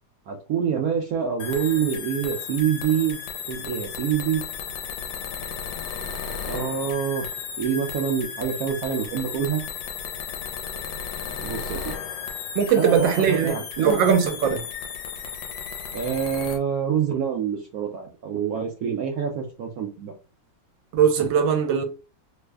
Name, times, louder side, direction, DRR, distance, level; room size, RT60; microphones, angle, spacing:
voice 1, 0.3-3.2 3.5-4.4 6.5-7.2 7.6-9.6 11.4-11.9 12.8-14.0 15.9-20.1, right 8 dB, 70° right, 0.9 m, -26 dB
sound 1, 1.4-16.6, left 7 dB, 85° left, 1.3 m, -34 dB
voice 2, 12.5-13.5 13.8-14.7 20.9-21.8, right 7 dB, 85° right, 1.3 m, -20 dB
3.2 x 2.0 x 3.3 m
omnidirectional pair, 2.0 m